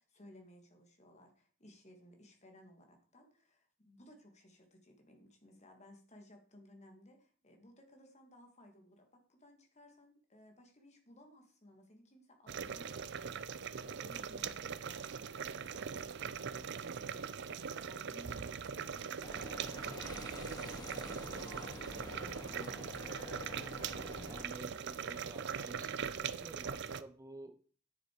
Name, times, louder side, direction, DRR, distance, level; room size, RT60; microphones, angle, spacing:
voice 1, 0.0-13.1 13.7-17.4 17.8-20.4 20.7-23.6, equal, 35° left, 2.4 m, -60 dB
sound 1, 12.5-27.0, right 6 dB, 60° right, 0.6 m, -41 dB
sound 2, 19.2-24.4, left 1 dB, 20° left, 2.0 m, -48 dB
voice 2, 24.2-27.6, right 2 dB, 15° right, 0.6 m, -51 dB
10.0 x 6.8 x 5.0 m
head